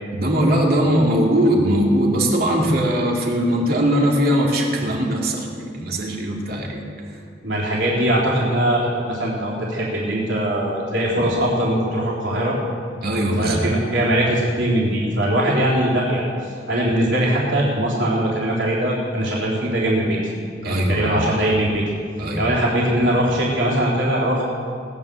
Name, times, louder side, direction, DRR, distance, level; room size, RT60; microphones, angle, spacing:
voice 1, 0.1-7.2 13.0-13.7 15.5-15.6 20.6-21.2 22.2-22.5, equal, 55° right, -1 dB, 2.5 m, -20 dB
voice 2, 7.4-12.6 13.4-16.3 16.7-20.3 20.6-21.8 22.4-24.4, right 1 dB, 80° right, -5 dB, 3.8 m, -21 dB
19.0 x 9.9 x 7.0 m, 2.3 s
head